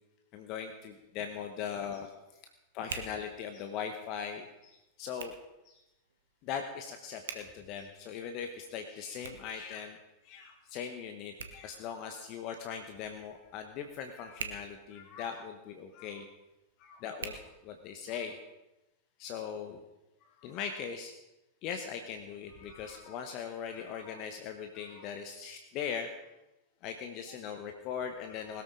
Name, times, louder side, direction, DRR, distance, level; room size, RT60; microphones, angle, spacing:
voice 1, 0.3-2.1 2.7-5.3 5.6-5.8 6.4-10.0 10.2-16.3 16.8-18.4 19.2-19.8 20.4-21.1 21.6-26.1 26.8-28.6, left 7 dB, 40° left, 6 dB, 1.2 m, -40 dB
Hands, 0.6-18.3, right 6 dB, 65° right, 1.5 m, -50 dB
20.5 x 13.5 x 3.8 m, 0.98 s
figure-of-eight pair, 90°, 0 cm